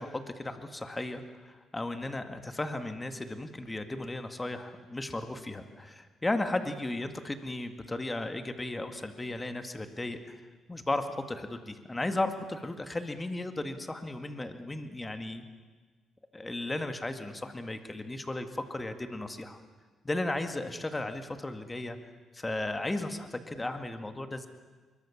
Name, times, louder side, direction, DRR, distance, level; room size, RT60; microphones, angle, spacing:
voice 1, 0.0-10.4 10.7-15.5 16.3-19.6 20.0-22.0 22.3-24.5, left 2 dB, 15° left, 8 dB, 2.0 m, -35 dB
24.0 x 22.5 x 7.4 m, 1.4 s
cardioid pair, 90°, 0 cm